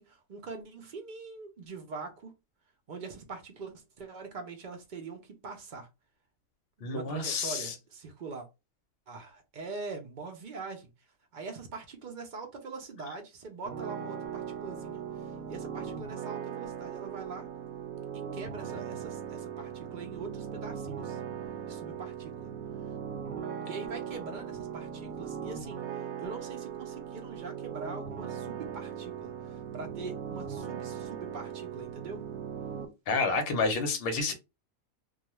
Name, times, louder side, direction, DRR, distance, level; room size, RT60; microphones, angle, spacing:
voice 1, 0.0-2.3 2.9-5.9 6.8-8.5 9.1-10.9 11.3-15.0 15.5-17.5 18.3-21.2 21.6-22.5 23.6-25.8 26.2-32.2, right 4 dB, 55° right, 0.5 m, -43 dB
voice 2, 6.8-7.7 33.1-34.3, left 3 dB, 55° left, 0.8 m, -29 dB
sound 1, 13.7-32.9, right 8 dB, 85° right, 1.0 m, -39 dB
2.3 x 2.3 x 2.9 m
omnidirectional pair, 1.4 m